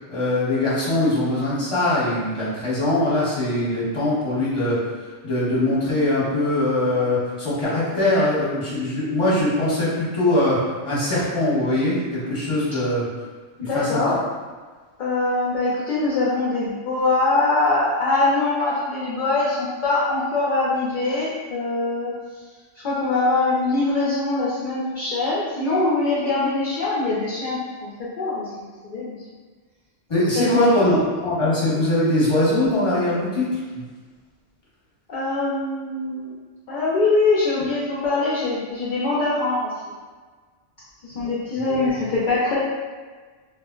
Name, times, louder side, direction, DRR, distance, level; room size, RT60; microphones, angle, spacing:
voice 1, 0.1-4.8 5.2-13.1 13.6-14.0 30.1-30.9 31.2-33.5 33.7-33.8 41.7-41.9, left 1 dB, 30° left, -8 dB, 0.9 m, -22 dB
voice 2, 13.6-14.2 15.0-22.1 22.8-28.5 28.8-29.2 30.4-30.8 35.1-36.3 36.7-39.7 41.0-42.7, left 3 dB, 55° left, -8 dB, 0.6 m, -23 dB
2.4 x 2.0 x 3.6 m, 1.4 s
omnidirectional pair, 1.2 m